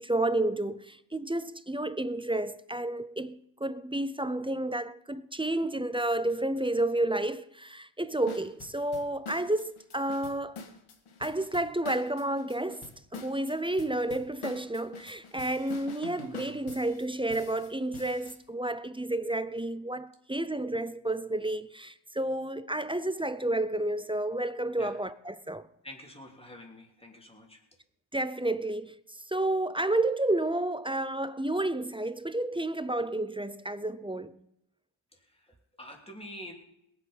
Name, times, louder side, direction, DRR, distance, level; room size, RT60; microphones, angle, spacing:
voice 1, 0.0-10.6 11.2-25.7 28.1-28.9 29.3-34.4, right 1 dB, 10° right, 0.4 m, -31 dB
sound 1, 8.3-18.4, left 4 dB, 85° left, 2.0 m, -46 dB
voice 2, 25.8-27.6 35.3-36.5, left 1 dB, 10° left, 2.8 m, -47 dB
21.5 x 8.1 x 5.5 m
wide cardioid pair, 140°, 48 cm